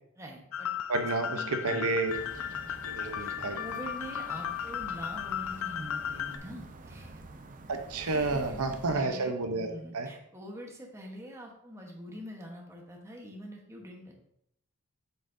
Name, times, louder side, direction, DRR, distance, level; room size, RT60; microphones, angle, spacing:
voice 1, 0.2-0.7 1.3-2.0 2.3-2.6 3.2-7.2 8.0-14.1, equal, 15° right, 0 dB, 1.1 m, -45 dB
sound 1, 0.5-6.4, left 9 dB, 65° left, 0.4 m, -35 dB
voice 2, 0.9-2.1 2.8-3.6 7.7-9.7 9.9-10.1, right 3 dB, 90° right, 6 dB, 0.8 m, -30 dB
sound 2, 2.1-9.0, right 2 dB, 40° right, 0.5 m, -47 dB
7.4 x 5.8 x 2.7 m, 0.73 s
head